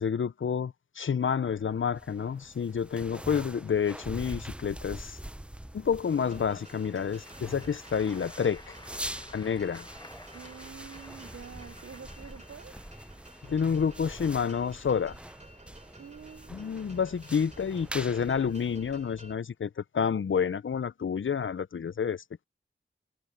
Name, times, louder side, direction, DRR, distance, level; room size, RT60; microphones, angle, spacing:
voice 1, 0.0-5.2 5.7-8.7 9.3-9.9 13.5-15.1 16.5-22.4, left 7 dB, 70° left, 0.5 m, -29 dB
sound 1, 1.4-19.3, right 1 dB, 5° right, 0.5 m, -44 dB
sound 2, 6.2-19.3, right 1 dB, 35° right, 3.3 m, -52 dB
Applause / Crowd, 6.8-13.3, left 1 dB, 20° left, 1.4 m, -53 dB
voice 2, 10.3-12.7 16.0-16.9, right 7 dB, 90° right, 0.6 m, -47 dB
wide cardioid pair, 60°, 21 cm